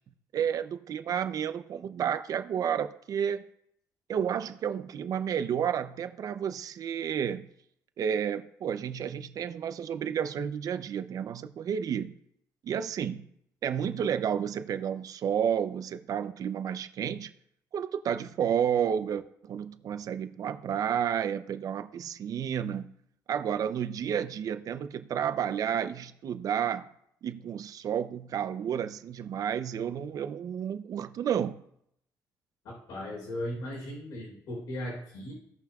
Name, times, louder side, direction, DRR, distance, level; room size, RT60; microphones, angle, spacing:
voice 1, 0.3-3.4 4.1-7.5 8.0-12.1 12.6-13.2 13.6-17.3 17.7-22.9 23.3-26.9 27.2-31.5, right 8 dB, 60° right, 11 dB, 0.6 m, -31 dB
voice 2, 32.6-35.3, left 1 dB, 75° left, -3 dB, 3.9 m, -37 dB
16.5 x 5.7 x 2.4 m, 0.72 s
cardioid pair, 95°, 7 cm